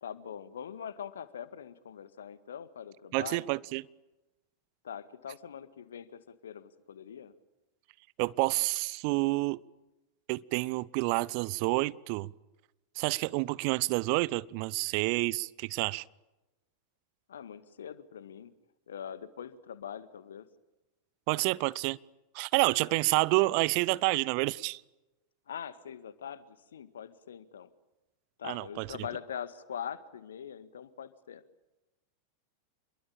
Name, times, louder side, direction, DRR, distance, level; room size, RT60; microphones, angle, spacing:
voice 1, 0.0-3.5 4.8-7.3 17.3-18.5 18.9-20.5 25.5-27.7 28.4-31.4, left 8 dB, 65° left, 1.8 m, -43 dB
voice 2, 3.1-3.8 8.2-9.6 10.3-12.3 13.0-16.0 21.3-22.0 22.3-24.8 28.5-28.9, right 23 dB, 45° right, 0.8 m, -29 dB
28.0 x 22.5 x 8.7 m
figure-of-eight pair, 90°, 0 cm